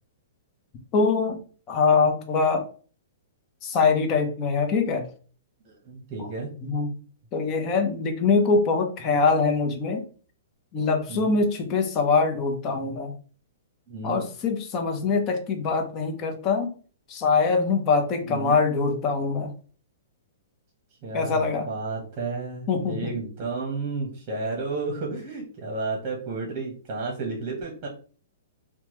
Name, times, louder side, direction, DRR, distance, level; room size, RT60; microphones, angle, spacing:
voice 1, 0.9-1.4 1.7-2.7 3.6-5.0 6.6-6.9 7.3-10.0 10.7-13.1 14.0-16.7 17.1-19.5 21.1-21.7 22.7-22.9, left 4 dB, 30° left, 5 dB, 0.7 m, -23 dB
voice 2, 5.6-6.5 11.1-11.3 13.9-14.2 18.2-18.6 21.0-27.9, right 3 dB, 30° right, -2 dB, 0.9 m, -32 dB
3.0 x 2.2 x 3.0 m, 0.40 s
hypercardioid pair, 140°, 0 cm